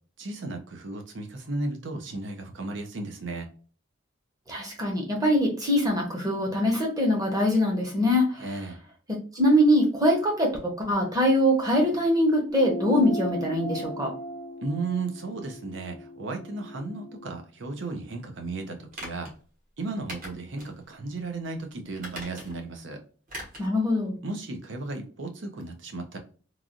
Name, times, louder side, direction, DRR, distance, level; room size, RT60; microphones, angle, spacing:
voice 1, 0.2-3.5 8.4-8.8 14.6-19.3 19.8-23.0 24.2-26.2, right 3 dB, 65° right, 4 dB, 0.7 m, -34 dB
voice 2, 4.5-8.5 9.1-10.5 10.8-14.1 23.6-24.2, equal, 20° right, 0 dB, 0.9 m, -23 dB
sound 1, 12.5-17.3, left 1 dB, 15° left, 0.7 m, -37 dB
sound 2, 18.9-19.3 20.1-20.7 21.1-21.2 21.9-22.7 23.3-23.7 24.0-24.1, equal, 45° right, 1.2 m, -40 dB
3.2 x 2.4 x 2.5 m, 0.39 s
head